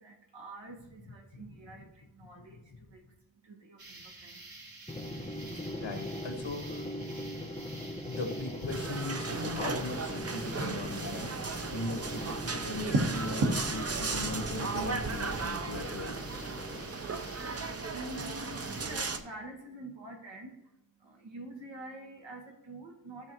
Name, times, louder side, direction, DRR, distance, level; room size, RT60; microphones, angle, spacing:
voice 1, 0.0-1.9 2.1-2.6 2.9-3.0 3.4-4.3 17.9-20.5 21.0-23.3, right 1 dB, 75° right, 2 dB, 1.7 m, -46 dB
sound 1, 3.8-19.2, right 2 dB, 50° right, 1.6 m, -41 dB
Drum, 4.9-17.2, left 1 dB, 10° left, 0.8 m, -41 dB
voice 2, 5.5-6.8 8.0-16.2, left 2 dB, 75° left, 4 dB, 1.3 m, -39 dB
sound 2, 8.7-19.2, right 4 dB, 35° right, 0.7 m, -36 dB
13.0 x 6.3 x 3.1 m, 0.92 s
wide cardioid pair, 65°, 45 cm